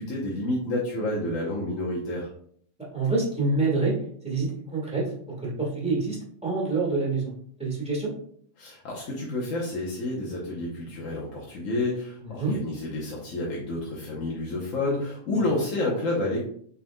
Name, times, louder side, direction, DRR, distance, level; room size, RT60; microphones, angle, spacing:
voice 1, 0.0-2.3 8.6-16.4, left 2 dB, 75° left, -4 dB, 1.3 m, -29 dB
voice 2, 2.9-3.9 4.2-5.0 5.4-6.2 6.4-7.3 7.6-8.1 12.2-12.6 15.3-15.4, right 3 dB, 5° right, -4 dB, 1.5 m, -26 dB
6.6 x 3.6 x 2.3 m, 0.62 s
omnidirectional pair, 1.4 m